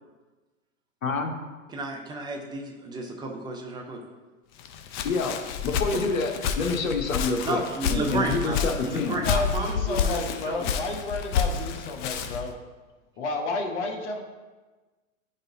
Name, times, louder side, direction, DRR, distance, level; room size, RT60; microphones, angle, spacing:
voice 1, 1.0-1.3 5.0-5.4 5.6-7.6 7.9-9.2, left 4 dB, 80° left, 4 dB, 1.0 m, -27 dB
voice 2, 1.7-4.0 5.9-6.0 7.4-10.8, right 2 dB, 10° right, 1 dB, 0.6 m, -32 dB
Walk footsteps, 4.6-12.5, left 6 dB, 40° left, 0.5 m, -29 dB
voice 3, 9.2-12.5 13.2-14.2, left 3 dB, 60° left, 3 dB, 1.1 m, -31 dB
10.0 x 4.0 x 2.7 m, 1.3 s
hypercardioid pair, 120°, 40 cm